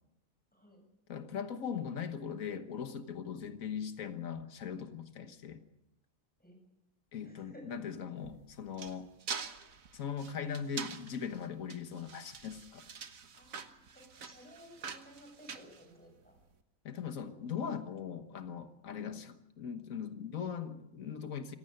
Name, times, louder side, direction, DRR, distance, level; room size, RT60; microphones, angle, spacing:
voice 1, 1.1-5.6 7.1-9.1 9.9-12.8 16.8-21.6, left 7 dB, 90° left, 9 dB, 1.6 m, -40 dB
voice 2, 7.2-7.7 13.3-16.4 18.9-19.2, equal, 5° left, 1 dB, 7.2 m, -56 dB
sound 1, 8.2-16.4, right 6 dB, 85° right, 1.7 m, -45 dB
26.5 x 15.5 x 6.6 m, 0.91 s
omnidirectional pair, 1.4 m